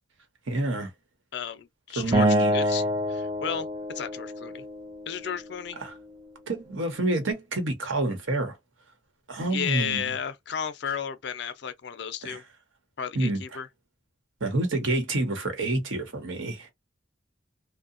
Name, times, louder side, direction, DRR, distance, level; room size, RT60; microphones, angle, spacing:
voice 1, 0.5-0.9 2.0-2.5 5.8-5.9 6.5-8.6 9.3-10.1 12.2-12.4 13.1-13.4 14.4-16.7, right 2 dB, 85° right, 1.0 m, -28 dB
voice 2, 1.3-2.8 3.1-3.7 3.9-4.6 5.1-5.8 9.5-12.4 13.0-13.7, left 8 dB, 60° left, 0.4 m, -33 dB
Acoustic guitar, 2.1-5.4, equal, 25° right, 0.4 m, -26 dB
2.8 x 2.1 x 2.5 m
head